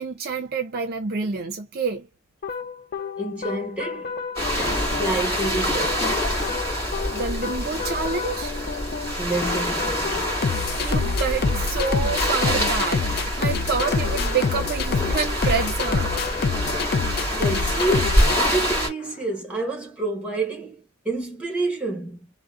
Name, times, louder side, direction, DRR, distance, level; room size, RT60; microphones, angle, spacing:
voice 1, 0.0-2.1 7.1-8.6 10.8-16.1, right 5 dB, 50° right, 0.5 m, -28 dB
sound 1, 2.4-19.1, left 5 dB, 50° left, 0.3 m, -28 dB
voice 2, 3.2-4.2 4.6-6.2 9.2-10.3 13.4-13.6 17.4-22.3, right 2 dB, 5° right, 1.2 m, -29 dB
sound 2, 4.4-18.9, equal, 15° left, 1.7 m, -26 dB
3.6 x 2.1 x 2.4 m
head